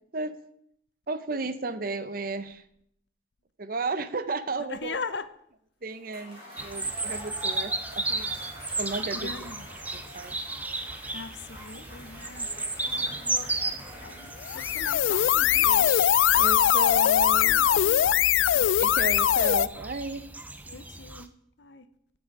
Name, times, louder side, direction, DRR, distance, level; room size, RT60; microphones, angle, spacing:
voice 1, 1.1-2.6 3.6-5.0 5.8-8.3 8.8-9.5 9.9-10.3 16.3-17.7 18.5-20.3, right 3 dB, 50° right, 13 dB, 0.7 m, -34 dB
voice 2, 4.7-5.3 9.1-9.7 11.1-12.5 13.0-15.9 20.7-21.3 21.6-21.9, left 4 dB, 70° left, 12 dB, 0.7 m, -40 dB
Cheering / Applause / Crowd, 5.9-16.4, equal, 30° right, 4.3 m, -47 dB
sound 1, 6.6-21.3, right 2 dB, 10° right, 0.5 m, -35 dB
sound 2, 14.4-19.7, left 11 dB, 90° left, 0.3 m, -21 dB
16.0 x 6.2 x 4.7 m, 0.71 s
head